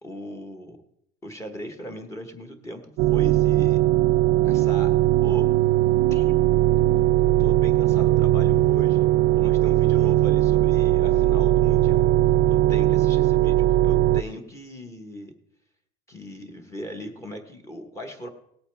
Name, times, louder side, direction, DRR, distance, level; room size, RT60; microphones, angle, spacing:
voice 1, 0.0-0.8 1.2-3.8 4.4-5.5 6.1-6.3 7.0-7.1 7.4-9.1 9.3-12.1 12.5-15.3 16.1-18.3, equal, 15° left, 5 dB, 1.1 m, -38 dB
sound 1, 3.0-14.2, right 15 dB, 60° right, 0.4 m, -19 dB
17.5 x 8.4 x 3.4 m, 0.72 s
cardioid pair, 160°, 18 cm